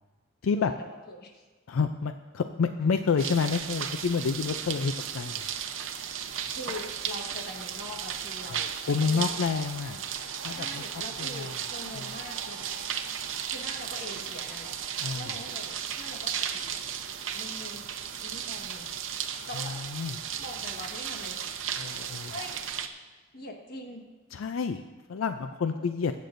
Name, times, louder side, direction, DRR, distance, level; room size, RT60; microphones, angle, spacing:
voice 1, 0.5-1.4 6.6-9.4 10.5-12.7 13.5-14.7 15.1-16.8 17.3-17.9 18.2-18.9 19.5-19.8 20.4-21.5 22.3-22.6 23.3-24.0 25.7-25.8, left 1 dB, 55° left, 2 dB, 1.5 m, -43 dB
voice 2, 1.7-5.4 8.5-10.0 10.4-10.8 11.2-11.5 15.0-15.3 19.6-20.1 21.8-22.3 24.3-24.8 25.1-26.1, left 5 dB, 90° left, 9 dB, 0.4 m, -29 dB
sound 1, 3.2-22.9, right 8 dB, 70° right, 0.7 m, -35 dB
22.0 x 8.4 x 2.6 m, 1.3 s
head